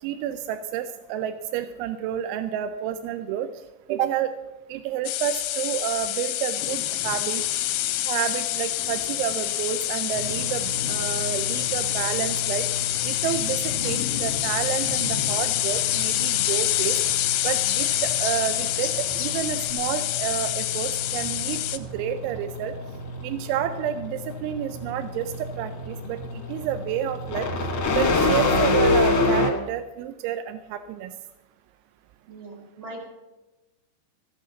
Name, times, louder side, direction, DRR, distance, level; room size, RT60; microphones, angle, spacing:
voice 1, 0.0-3.5 3.9-4.3 4.7-7.4 8.0-12.7 13.0-17.0 17.4-22.7 23.2-27.5 27.9-31.1, right 10 dB, 85° right, 9 dB, 3.0 m, -30 dB
sound 1, 5.1-21.8, left 15 dB, 85° left, 2.7 m, -27 dB
sound 2, 6.6-19.7, left 6 dB, 65° left, 1.9 m, -38 dB
sound 3, 10.1-29.5, left 2 dB, 50° left, 1.6 m, -29 dB
voice 2, 32.3-33.1, right 2 dB, 40° right, 0 dB, 1.8 m, -40 dB
14.5 x 8.6 x 6.9 m, 1.1 s
omnidirectional pair, 5.4 m